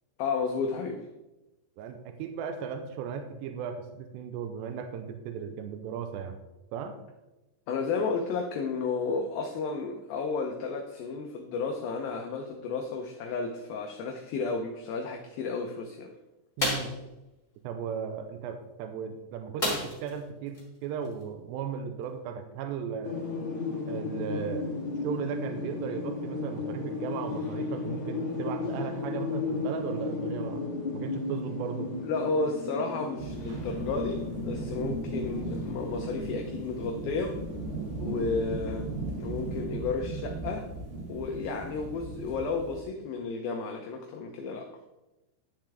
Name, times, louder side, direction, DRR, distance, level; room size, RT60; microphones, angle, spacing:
voice 1, 0.2-1.0 7.7-16.1 32.0-37.4 38.0-38.8 39.2-40.7 41.1-44.7, left 4 dB, 80° left, 3 dB, 2.1 m, -32 dB
voice 2, 1.8-6.4 6.7-7.0 16.6-16.9 17.6-23.2 23.9-24.7 25.0-30.6 30.9-31.9 34.8-35.0 38.1-38.3, right 7 dB, 85° right, 7 dB, 2.8 m, -36 dB
sound 1, 16.6-17.0 19.6-20.2 20.5-20.6 21.0-21.2, left 1 dB, 20° left, 1.3 m, -29 dB
sound 2, 23.0-39.6, left 3 dB, 50° left, 1.7 m, -35 dB
sound 3, 33.2-42.8, right 4 dB, 70° right, 3.9 m, -38 dB
11.5 x 6.8 x 3.4 m, 1.0 s
omnidirectional pair, 5.1 m